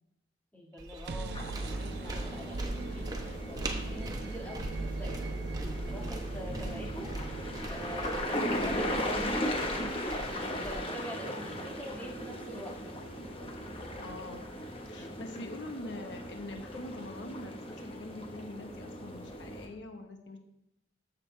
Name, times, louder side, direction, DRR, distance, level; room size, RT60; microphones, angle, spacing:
voice 1, 0.5-5.2 5.9-7.1 7.7-12.8 14.9-15.4, equal, 10° left, -3 dB, 1.7 m, -45 dB
sound 1, 0.8-10.8, right 1 dB, 20° right, 0.9 m, -42 dB
sound 2, 0.8-14.6, right 3 dB, 60° right, 0.5 m, -41 dB
sound 3, 1.3-19.7, left 1 dB, 30° left, 1.2 m, -38 dB
voice 2, 14.0-14.4 14.8-20.4, left 1 dB, 85° left, 4 dB, 1.2 m, -44 dB
14.0 x 6.4 x 3.3 m, 0.81 s
head